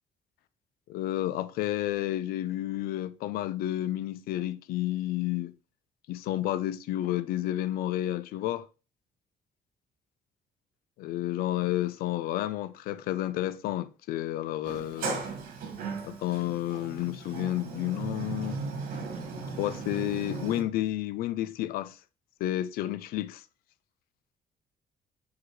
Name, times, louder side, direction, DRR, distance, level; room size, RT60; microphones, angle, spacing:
voice 1, 0.9-5.5 6.1-8.7 11.0-15.2 16.0-18.6 19.4-22.0 22.4-23.4, left 14 dB, 90° left, 0.5 m, -31 dB
Sliding door, 14.6-20.6, right 4 dB, 75° right, 1.9 m, -37 dB
6.1 x 4.0 x 4.6 m
cardioid pair, 150°, 15 cm